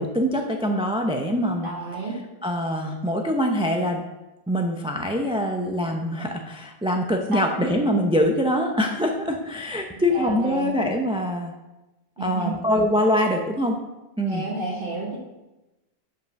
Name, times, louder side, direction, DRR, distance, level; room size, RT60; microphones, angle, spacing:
voice 1, 0.0-1.7 2.4-4.0 4.5-11.5 12.2-13.8 14.2-14.4, equal, 10° right, 3 dB, 0.4 m, -24 dB
voice 2, 1.6-2.1 7.3-7.5 10.1-10.7 12.2-12.5 14.3-15.2, right 3 dB, 60° right, -3 dB, 1.6 m, -30 dB
5.5 x 5.1 x 6.3 m, 1.0 s
omnidirectional pair, 1.1 m